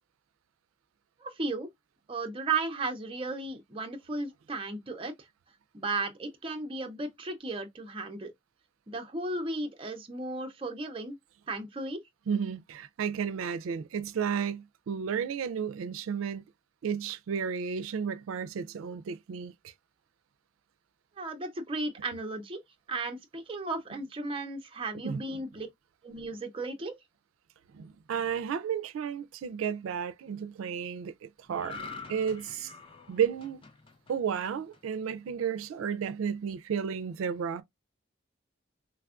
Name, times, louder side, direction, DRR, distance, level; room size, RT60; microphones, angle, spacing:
voice 1, 1.2-1.7 2.1-5.1 5.7-8.3 8.9-11.2 11.5-12.0 21.2-22.6 22.9-25.7 26.0-27.0, right 3 dB, 25° right, 0.5 m, -35 dB
voice 2, 12.3-16.4 16.8-19.5 25.0-25.4 27.7-32.7 33.1-33.6 34.1-37.6, right 7 dB, 90° right, 0.3 m, -33 dB
sound 1, 31.5-35.0 35.4-35.7, left 4 dB, 25° left, 0.4 m, -46 dB
3.4 x 2.3 x 2.3 m
head